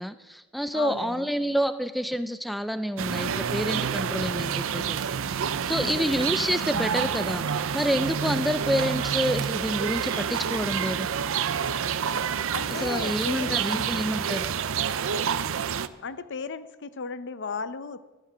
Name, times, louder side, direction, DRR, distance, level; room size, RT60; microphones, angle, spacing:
voice 1, 0.0-11.1 12.7-14.5, equal, ahead, 11 dB, 0.4 m, -28 dB
voice 2, 0.7-1.3 5.7-6.0 12.5-14.1 16.0-18.0, left 4 dB, 55° left, 13 dB, 0.7 m, -35 dB
sound 1, 3.0-15.9, right 7 dB, 65° right, 0.6 m, -28 dB
sound 2, 6.2-6.7 7.0-7.2 7.5-7.8 8.4-9.3 9.6-9.8 10.1-10.6 11.0-11.9, right 5 dB, 20° right, 0.8 m, -43 dB
14.0 x 12.5 x 6.2 m, 1.2 s
head